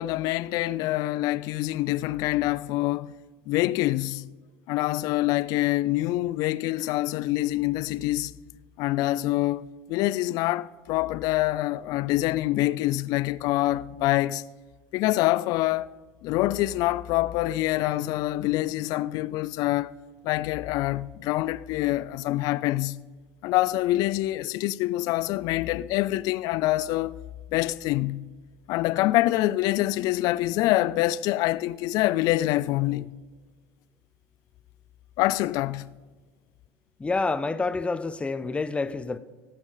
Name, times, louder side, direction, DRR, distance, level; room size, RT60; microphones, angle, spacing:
voice 1, 0.0-3.1 3.5-4.3 4.7-8.3 8.8-14.4 14.9-15.9 16.2-19.9 20.2-23.0 23.4-27.2 27.5-28.3 28.7-33.1 35.2-35.9, left 16 dB, 55° left, 0.4 m, -25 dB
voice 2, 37.0-39.2, left 3 dB, 15° left, 0.7 m, -28 dB
17.5 x 6.1 x 3.9 m
hypercardioid pair, 80°, 7 cm